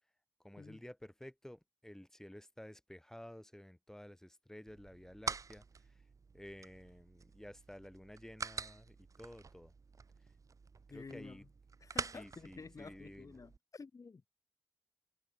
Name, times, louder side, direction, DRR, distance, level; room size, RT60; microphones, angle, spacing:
voice 1, 0.4-6.0 6.3-9.7 10.9-11.4 12.1-13.4, left 1 dB, 5° left, 2.8 m, -53 dB
sound 1, 4.7-13.6, right 5 dB, 60° right, 0.9 m, -47 dB
voice 2, 10.9-11.5 11.8-14.3, left 4 dB, 60° left, 2.4 m, -51 dB
cardioid pair, 55°, 6 cm